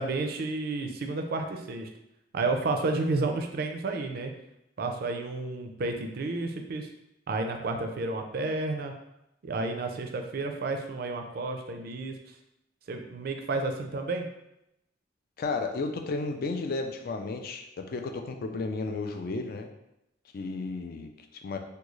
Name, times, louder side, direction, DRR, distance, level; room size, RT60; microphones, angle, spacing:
voice 1, 0.0-1.9 2.3-4.3 4.8-6.9 7.3-8.9 9.4-12.1 12.9-14.3, right 3 dB, 55° right, 5 dB, 0.4 m, -31 dB
voice 2, 15.4-19.7 20.3-21.1 21.4-21.6, left 3 dB, 50° left, 5 dB, 0.4 m, -33 dB
3.6 x 2.2 x 3.1 m, 0.86 s
head